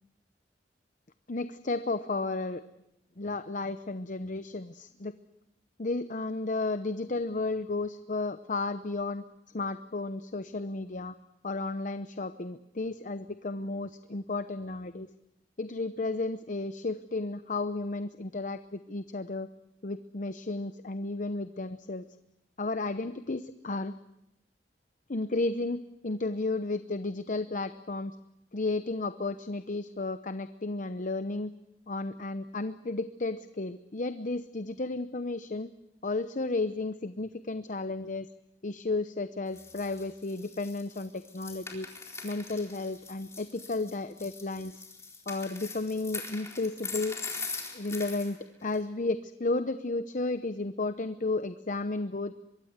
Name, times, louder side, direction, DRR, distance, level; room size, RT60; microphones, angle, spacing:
voice 1, 1.3-2.6 3.2-5.2 5.8-9.2 9.5-11.1 11.4-15.1 15.6-19.5 19.8-22.0 22.6-23.9 25.1-28.2 28.5-31.5 31.9-35.7 36.0-38.3 38.6-41.9 42.2-44.7 45.3-47.2 47.7-52.4, left 3 dB, 45° left, 11 dB, 0.8 m, -33 dB
sound 1, 39.5-48.3 48.7-48.8, left 4 dB, 15° left, 4.1 m, -42 dB
24.5 x 23.0 x 8.1 m, 0.83 s
head